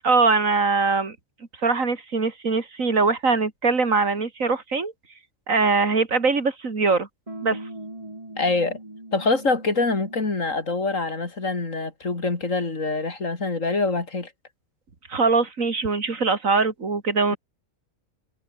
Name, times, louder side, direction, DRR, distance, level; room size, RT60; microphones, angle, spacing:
voice 1, 0.0-1.2 1.6-4.9 5.5-7.1 7.4-7.6 15.1-17.4, right 4 dB, 85° right, 3.2 m, -22 dB
sound 1, 7.3-10.4, right 1 dB, 25° right, 4.2 m, -40 dB
voice 2, 8.4-8.8 9.1-14.3, left 3 dB, 75° left, 3.8 m, -25 dB
omnidirectional pair, 1.3 m